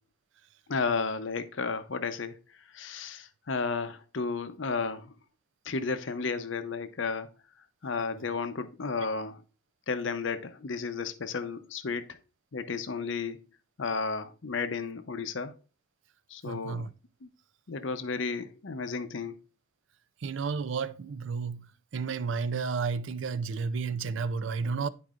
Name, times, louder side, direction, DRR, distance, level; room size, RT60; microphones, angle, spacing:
voice 1, 0.7-2.4 2.7-5.1 5.6-7.3 7.8-9.4 9.9-12.2 12.5-13.4 13.8-15.5 16.3-16.9 17.2-17.3 17.7-19.4, left 4 dB, 65° left, 0.7 m, -33 dB
voice 2, 16.4-16.9 20.2-21.7 21.9-24.9, right 5 dB, 65° right, 0.5 m, -32 dB
11.0 x 4.5 x 2.4 m
head